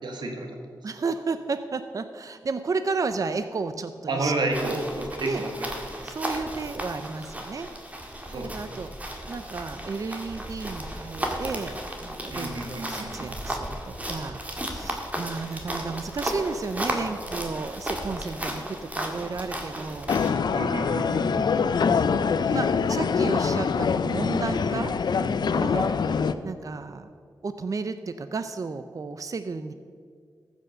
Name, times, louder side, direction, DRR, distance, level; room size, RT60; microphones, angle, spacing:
voice 1, 0.0-0.5 4.1-5.7 6.2-6.3 8.3-8.8 12.3-13.3 20.5-21.7 25.7-25.9, right 2 dB, 75° right, 2 dB, 1.9 m, -31 dB
voice 2, 0.8-4.3 4.7-4.9 5.2-5.4 6.0-7.7 8.4-20.1 21.1-21.8 22.5-24.9 25.5-25.9 26.4-27.1 27.4-29.7, right 4 dB, 50° right, 10 dB, 0.5 m, -33 dB
sound 1, 4.5-20.3, right 1 dB, 20° right, 1.9 m, -34 dB
sound 2, 20.1-26.3, left 5 dB, 70° left, 0.5 m, -24 dB
14.0 x 6.2 x 6.7 m, 2.1 s
cardioid pair, 70°, 8 cm